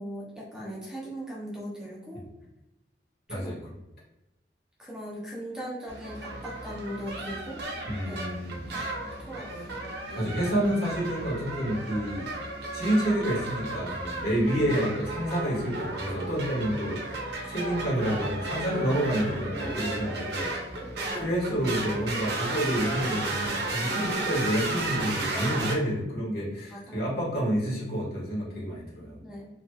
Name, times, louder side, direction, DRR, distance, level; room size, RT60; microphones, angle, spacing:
voice 1, 0.0-2.3 3.3-3.6 4.8-7.6 8.1-8.4 8.7-8.9 9.2-9.8 10.1-10.4 14.5-14.7 20.8-21.2 26.7-27.1 29.2-29.5, equal, 5° right, -6 dB, 0.7 m, -39 dB
sound 1, 5.9-25.7, right 2 dB, 65° right, 0.8 m, -34 dB
voice 2, 7.9-8.7 10.1-12.2 12.7-20.8 21.2-29.2, equal, 60° left, -5 dB, 1.5 m, -29 dB
3.1 x 3.1 x 2.2 m, 0.98 s
head